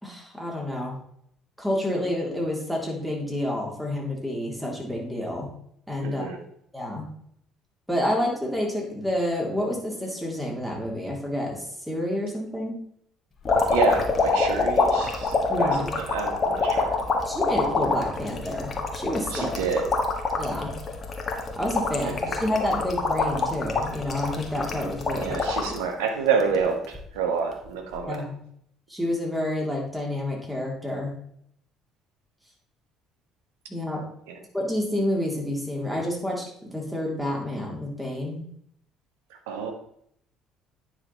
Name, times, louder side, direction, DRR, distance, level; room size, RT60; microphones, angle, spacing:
voice 1, 0.0-0.9 1.6-5.5 5.9-6.3 6.7-7.1 7.9-12.8 15.5-15.9 17.3-19.5 20.4-20.7 21.6-25.4 25.7-25.8 28.1-28.4 28.9-31.2 33.7-34.0 34.5-38.4, left 1 dB, 5° right, -2 dB, 3.3 m, -29 dB
voice 2, 6.0-6.4 13.7-15.7 16.0-16.9 19.3-19.9 22.0-22.1 25.1-28.2 34.3-34.4 39.5-39.7, right 5 dB, 75° right, 5 dB, 1.3 m, -28 dB
sound 1, 13.4-25.8 26.3-27.0 28.0-28.2, left 3 dB, 40° left, 1.6 m, -26 dB
9.7 x 5.1 x 4.2 m, 0.69 s
hypercardioid pair, 55°, 0 cm